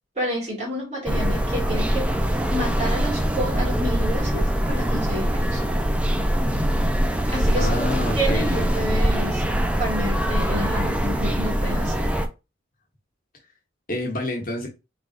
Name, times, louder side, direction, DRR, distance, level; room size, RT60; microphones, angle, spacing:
voice 1, 0.2-2.1 2.5-5.6 7.3-7.7 8.1-9.4 9.8-12.1, right 1 dB, 35° right, 2.3 m, -30 dB
sound 1, 1.1-12.3, equal, 5° right, 0.4 m, -23 dB
voice 2, 7.6-8.7 13.9-14.7, left 1 dB, 45° left, 1.1 m, -27 dB
3.9 x 3.4 x 2.5 m
head